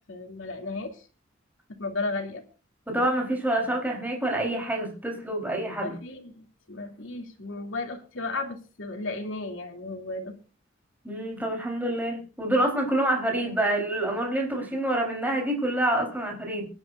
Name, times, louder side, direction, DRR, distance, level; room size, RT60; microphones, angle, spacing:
voice 1, 0.1-1.0 1.7-2.4 5.8-10.3, left 3 dB, 75° left, 3 dB, 2.8 m, -34 dB
voice 2, 2.9-6.0 11.0-16.7, right 1 dB, 10° right, 0 dB, 4.0 m, -27 dB
24.0 x 11.0 x 2.6 m, 0.34 s
head